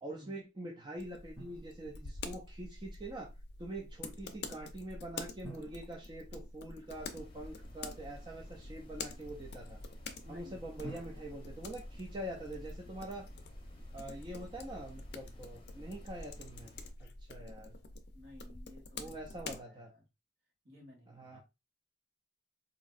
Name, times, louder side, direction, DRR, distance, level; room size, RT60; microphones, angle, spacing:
voice 1, 0.0-3.3 3.6-9.8 10.3-13.3 13.9-16.7 17.0-17.7 19.0-19.9 21.2-21.4, right 1 dB, 25° right, 0.4 m, -45 dB
sound 1, 1.0-19.6, left 3 dB, 55° left, 0.5 m, -48 dB
Drum, 1.4-2.4 5.4-7.3 10.8-12.8, right 2 dB, 5° right, 2.0 m, -53 dB
sound 2, 6.9-16.9, left 1 dB, 25° left, 0.7 m, -52 dB
voice 2, 10.2-10.6 18.1-20.0 20.6-21.4, left 1 dB, 55° right, 1.7 m, -56 dB
4.0 x 2.6 x 2.4 m
head